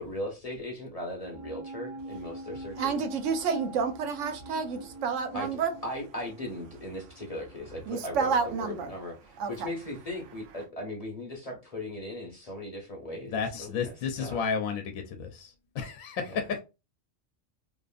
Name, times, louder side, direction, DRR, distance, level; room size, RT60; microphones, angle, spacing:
voice 1, 0.0-3.0 5.3-9.2 9.5-13.7 14.2-14.4, left 1 dB, 35° left, 0.7 m, -38 dB
sound 1, 1.2-7.8 8.0-8.1, right 1 dB, 50° right, 0.4 m, -44 dB
voice 2, 2.8-5.7 7.9-8.9 9.4-9.7, right 5 dB, 75° right, 0.9 m, -29 dB
voice 3, 13.3-16.6, left 6 dB, 80° left, 1.0 m, -32 dB
2.8 x 2.4 x 2.3 m
omnidirectional pair, 1.4 m